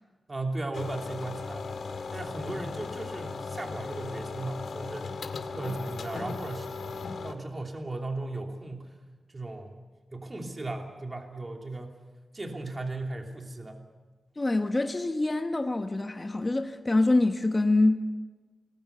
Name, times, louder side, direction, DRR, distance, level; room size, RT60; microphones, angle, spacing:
voice 1, 0.3-1.7 2.1-5.2 5.5-7.0 7.2-8.9 9.3-9.7 10.1-11.9 12.3-13.8, right 2 dB, 25° right, 2.9 m, -36 dB
sound 1, 0.7-7.3, left 4 dB, 85° left, 2.3 m, -37 dB
voice 2, 14.4-18.0, left 2 dB, 25° left, 1.1 m, -25 dB
28.5 x 20.5 x 6.8 m
wide cardioid pair, 155°, 0 cm